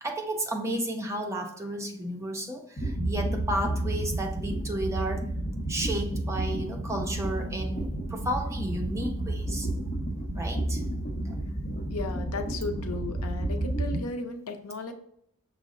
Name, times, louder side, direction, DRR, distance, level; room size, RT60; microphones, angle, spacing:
voice 1, 0.0-5.2 5.7-9.7 10.3-10.8 11.3-11.4, right 1 dB, 15° right, 2 dB, 0.6 m, -32 dB
sound 1, 2.8-14.0, right 1 dB, 40° left, 0.9 m, -31 dB
voice 2, 11.9-14.9, left 3 dB, 90° left, 6 dB, 0.6 m, -35 dB
5.9 x 2.1 x 3.6 m, 0.71 s
head